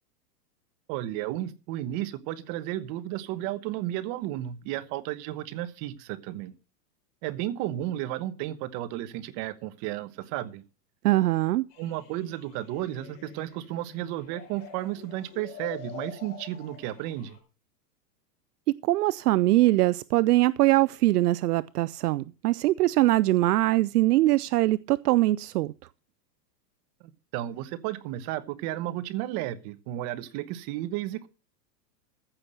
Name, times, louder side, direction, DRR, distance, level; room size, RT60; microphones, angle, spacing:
voice 1, 0.9-6.5 7.2-10.6 11.8-17.4 27.3-31.3, right 14 dB, 35° right, 1.1 m, -33 dB
voice 2, 11.0-11.7 18.8-25.7, right 17 dB, 70° right, 0.6 m, -22 dB
sound 1, 11.7-17.4, left 7 dB, 50° left, 5.4 m, -46 dB
15.0 x 5.9 x 6.5 m
hypercardioid pair, 135°, 49 cm